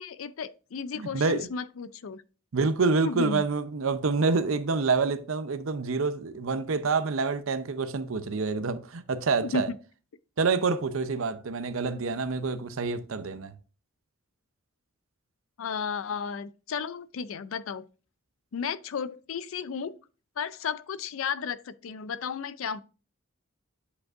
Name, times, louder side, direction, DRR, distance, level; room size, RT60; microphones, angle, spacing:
voice 1, 0.0-2.2 3.0-3.4 9.4-9.8 15.6-17.8 18.5-20.0 20.4-22.8, left 6 dB, 75° left, 0.4 m, -33 dB
voice 2, 1.0-1.5 2.5-9.7 10.4-13.5, right 4 dB, 75° right, 0.6 m, -27 dB
8.2 x 5.2 x 2.5 m
head